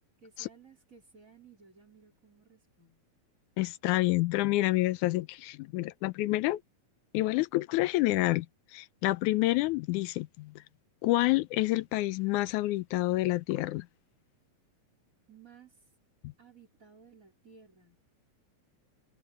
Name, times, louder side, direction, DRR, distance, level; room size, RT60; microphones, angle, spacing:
voice 1, 0.2-3.0 15.3-15.8 16.4-18.0, right 5 dB, 25° right, 4.4 m, -57 dB
voice 2, 3.6-6.6 7.1-8.5 8.7-10.5 11.0-13.9 16.2-16.3, left 18 dB, 90° left, 2.1 m, -28 dB
omnidirectional pair, 3.4 m